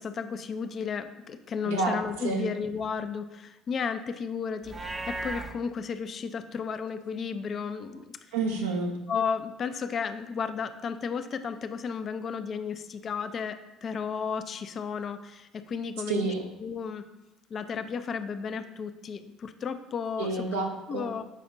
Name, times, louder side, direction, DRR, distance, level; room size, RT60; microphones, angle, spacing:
voice 1, 0.0-8.2 9.1-16.3 16.6-17.0 17.5-20.4 20.9-21.2, left 6 dB, 40° left, 10 dB, 0.4 m, -33 dB
voice 2, 1.6-2.0 2.2-2.5 8.3-8.9 16.1-16.5 20.2-21.0, right 3 dB, 75° right, 2 dB, 0.8 m, -29 dB
Livestock farm animals working animals, 4.6-5.5, right 2 dB, 20° right, 0.6 m, -35 dB
7.4 x 4.9 x 2.5 m, 0.98 s
figure-of-eight pair, 60°, 0 cm